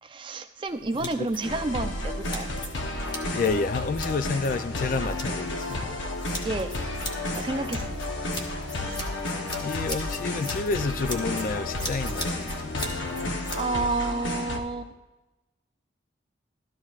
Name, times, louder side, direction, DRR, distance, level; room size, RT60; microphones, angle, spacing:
voice 1, 0.0-2.5 6.4-6.7 7.3-8.0 13.6-14.9, right 3 dB, 25° right, 0.5 m, -30 dB
sound 1, 0.7-13.6, left 1 dB, 25° left, 1.0 m, -40 dB
sound 2, 1.4-14.6, left 2 dB, 80° left, 0.9 m, -32 dB
voice 2, 3.3-6.0 9.6-13.4, left 4 dB, 45° left, 0.3 m, -30 dB
13.0 x 13.0 x 2.4 m
head